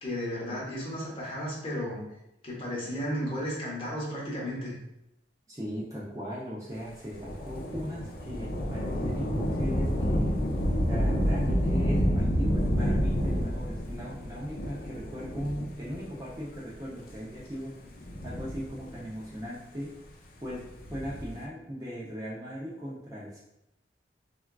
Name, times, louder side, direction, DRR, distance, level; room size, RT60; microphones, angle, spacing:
voice 1, 0.0-2.0 2.4-4.7, equal, 30° left, -5 dB, 0.8 m, -33 dB
voice 2, 5.5-10.3 10.9-17.7 18.2-19.9 20.4-20.6 20.9-23.4, equal, 20° right, -6 dB, 0.4 m, -38 dB
Thunder / Rain, 7.1-16.1 16.9-17.0 17.9-19.2 20.7-21.4, equal, 50° left, 0.4 m, -29 dB
3.5 x 2.3 x 2.2 m, 0.85 s
head